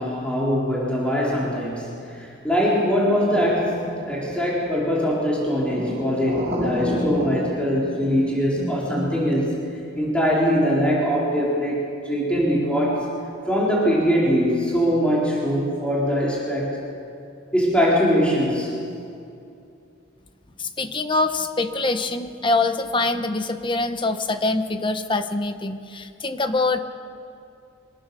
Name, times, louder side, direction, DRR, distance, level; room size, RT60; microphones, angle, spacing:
voice 1, 0.0-1.9 2.2-9.6 10.0-13.1 13.5-16.8 17.5-18.7, equal, 5° left, -5 dB, 3.8 m, -22 dB
sound 1, 3.2-9.2, equal, 40° right, 5.7 m, -31 dB
voice 2, 20.6-26.8, left 2 dB, 25° left, 9 dB, 1.0 m, -24 dB
24.5 x 18.5 x 6.9 m, 2.6 s
head